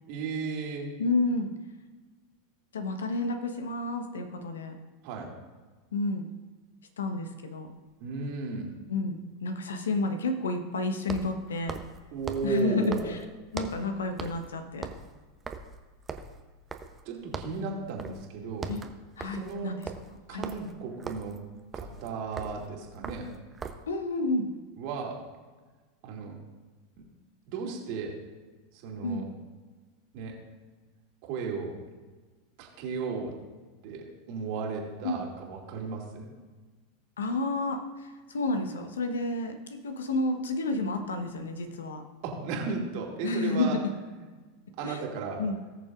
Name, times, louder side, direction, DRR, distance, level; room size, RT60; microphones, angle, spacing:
voice 1, 0.1-1.0 5.0-5.3 8.0-8.7 12.1-13.1 17.0-18.7 19.3-19.8 20.3-21.4 21.7-23.3 24.8-25.2 26.0-26.4 27.0-27.1 27.5-28.2 28.7-29.3 30.1-30.4 31.2-31.8 32.6-33.3 33.8-36.3 42.2-43.8 44.1-44.2 44.8-45.4, right 4 dB, 55° right, -1 dB, 2.3 m, -35 dB
voice 2, 1.0-1.5 2.7-4.7 5.9-6.2 7.0-7.7 8.9-11.8 12.4-13.2 13.5-14.9 18.7-18.8 19.2-19.8 20.3-20.5 23.9-24.5 29.0-29.3 35.0-35.2 37.2-42.0 43.2-43.9 44.8-45.0 45.4-45.6, left 2 dB, 80° left, 6 dB, 1.1 m, -30 dB
sound 1, 7.7-7.8 11.0-13.9 14.2-14.5 14.8-17.1 17.3-17.6 18.0-18.3 18.5-23.9, right 5 dB, 20° right, 0.8 m, -40 dB
19.0 x 6.8 x 2.5 m, 1.3 s
hypercardioid pair, 90°, 0 cm